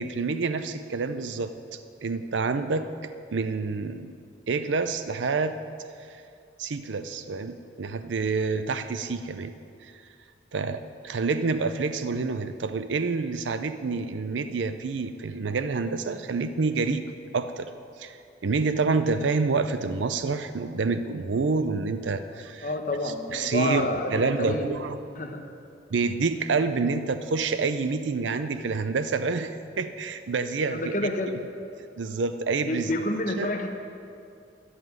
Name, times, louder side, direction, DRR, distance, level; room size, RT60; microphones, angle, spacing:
voice 1, 0.0-4.1 4.5-5.6 6.0-6.2 6.6-9.5 9.8-10.0 10.5-17.0 17.3-17.7 18.0-18.2 18.4-22.7 23.0-25.0 25.9-30.9 32.0-32.9 33.4-33.5, right 4 dB, 90° right, 10 dB, 0.5 m, -28 dB
voice 2, 22.6-24.7 25.2-25.4 30.7-31.4 32.7-33.7, left 1 dB, 45° left, 3 dB, 1.1 m, -28 dB
14.0 x 5.9 x 9.4 m, 2.4 s
head